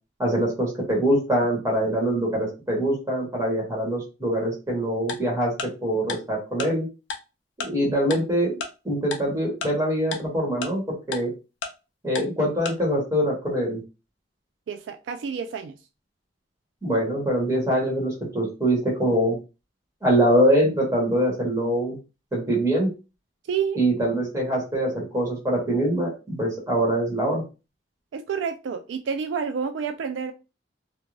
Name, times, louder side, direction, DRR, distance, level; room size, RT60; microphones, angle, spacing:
voice 1, 0.2-5.5 5.8-6.9 7.6-11.3 12.0-13.8 16.8-19.4 20.0-22.0 22.3-22.9 23.8-27.4, right 1 dB, 15° right, 1.1 m, -24 dB
Tick-tock, 5.1-5.2 5.6-5.7 6.1-6.2 6.6-6.7 7.1-7.2 7.6-7.7 8.1-8.2 8.6-8.7 9.1-9.2 9.6-9.7 10.1-10.2 10.6-10.7 11.1-11.2 11.6-11.7 12.2-12.3 12.7-12.8, left 4 dB, 85° left, 0.5 m, -30 dB
voice 2, 14.7-15.8 23.5-23.8 28.1-30.3, right 6 dB, 80° right, 0.3 m, -29 dB
2.4 x 2.2 x 3.1 m
head